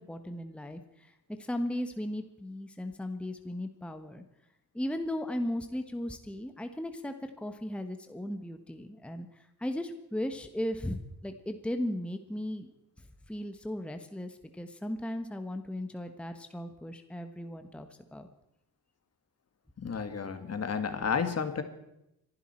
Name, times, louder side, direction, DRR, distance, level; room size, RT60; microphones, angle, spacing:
voice 1, 0.0-4.2 4.7-12.7 13.3-18.3, left 1 dB, 5° left, 7 dB, 1.1 m, -36 dB
voice 2, 19.8-21.6, left 6 dB, 45° left, 8 dB, 1.9 m, -31 dB
25.5 x 11.5 x 4.4 m, 0.84 s
cardioid pair, 80°, 35 cm